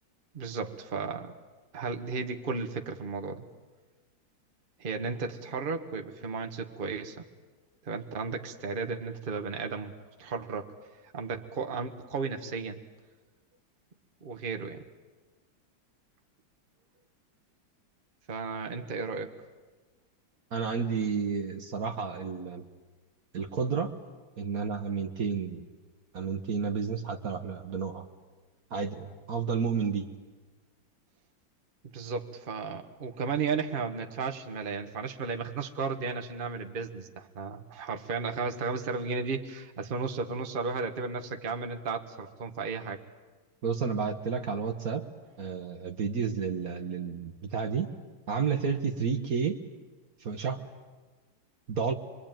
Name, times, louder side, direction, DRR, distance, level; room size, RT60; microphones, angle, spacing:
voice 1, 0.3-1.3 1.7-3.5 4.8-7.2 7.8-9.9 10.2-10.7 11.1-12.8 14.2-14.8 18.3-19.3 31.9-43.0, right 4 dB, 30° right, 5 dB, 1.3 m, -34 dB
voice 2, 20.5-22.6 23.3-24.0 24.4-25.6 26.1-28.1 28.7-30.1 43.6-45.0 45.4-47.9 48.3-49.6 50.2-50.7 51.7-51.9, right 6 dB, 50° right, 6 dB, 1.5 m, -31 dB
25.5 x 23.0 x 9.0 m, 1.3 s
omnidirectional pair, 2.1 m